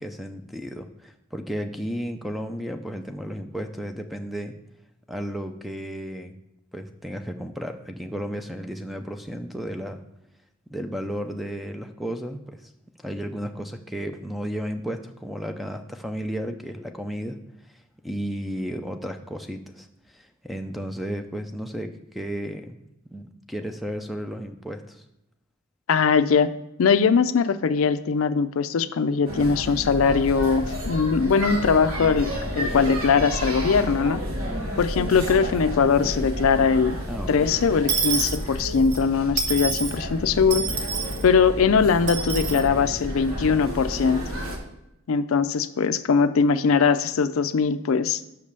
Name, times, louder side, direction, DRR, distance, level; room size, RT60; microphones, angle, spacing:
voice 1, 0.0-4.6 5.1-6.3 6.7-10.0 10.7-12.7 13.0-17.4 18.0-22.8 23.1-25.0 37.1-37.5, equal, ahead, 6 dB, 0.5 m, -33 dB
voice 2, 25.9-26.5 26.8-34.2 34.8-37.0 37.3-40.7 41.2-44.2 45.1-48.2, left 5 dB, 70° left, 12 dB, 0.4 m, -21 dB
sound 1, 29.3-44.6, equal, 75° right, 1.7 m, -31 dB
Dishes pots and pans / Coin (dropping), 37.9-39.0 39.4-40.0 40.5-41.2 42.1-42.6, right 5 dB, 55° right, 1.1 m, -27 dB
5.9 x 5.3 x 6.6 m, 0.85 s
head